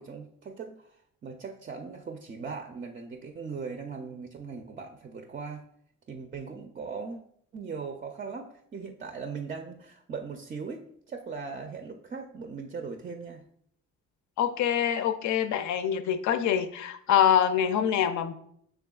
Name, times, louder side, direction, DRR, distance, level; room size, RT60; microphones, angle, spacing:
voice 1, 0.0-5.6 6.1-7.2 7.5-13.4, right 5 dB, 30° right, 5 dB, 0.4 m, -39 dB
voice 2, 14.4-18.3, left 9 dB, 70° left, 10 dB, 0.5 m, -25 dB
6.1 x 3.4 x 2.3 m, 0.68 s
cardioid pair, 90°, 30 cm